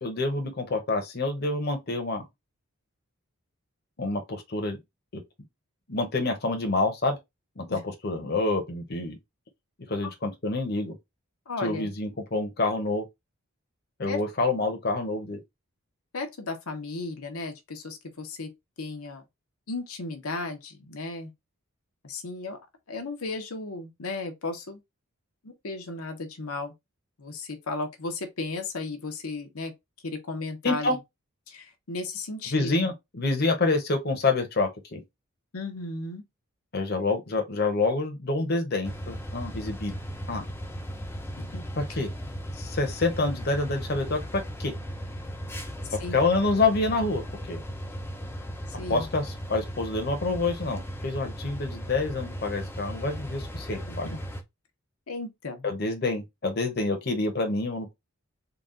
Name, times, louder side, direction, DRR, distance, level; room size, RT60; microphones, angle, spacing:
voice 1, 0.0-2.2 4.0-4.8 5.1-5.2 5.9-7.2 7.6-9.2 9.9-10.9 11.6-13.1 14.0-15.4 30.6-31.0 32.5-35.0 36.7-39.9 40.3-40.4 41.8-42.1 42.5-44.7 46.1-47.2 47.5-47.6 48.9-54.1 55.6-57.9, left 3 dB, 45° left, 0.8 m, -27 dB
voice 2, 11.5-11.9 14.1-14.2 16.1-18.5 18.8-19.2 19.7-21.3 22.0-22.6 22.9-24.8 25.4-26.7 27.2-29.7 30.0-31.0 31.5-32.7 35.5-36.2 41.4-41.6 41.9-42.0 46.0-46.2 48.8-49.1 53.9-54.2 55.1-55.7, left 3 dB, 85° left, 0.9 m, -35 dB
sound 1, 38.8-54.4, equal, 10° left, 0.5 m, -37 dB
3.9 x 2.3 x 3.7 m
head